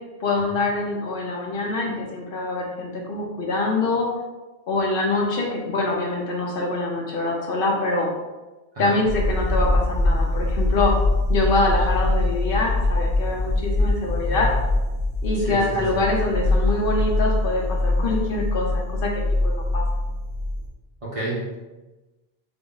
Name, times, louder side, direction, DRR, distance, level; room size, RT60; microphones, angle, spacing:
voice 1, 0.2-4.1 4.7-8.1 8.8-10.9 11.3-14.5 15.2-19.1 19.4-19.8, left 2 dB, 65° left, -1 dB, 0.7 m, -24 dB
sound 1, 9.1-20.7, left 2 dB, 85° right, 1.1 m, -23 dB
voice 2, 14.2-14.5 15.3-16.0 21.0-21.7, right 2 dB, 35° right, -6 dB, 0.9 m, -31 dB
3.8 x 2.0 x 3.7 m, 1.1 s
omnidirectional pair, 1.1 m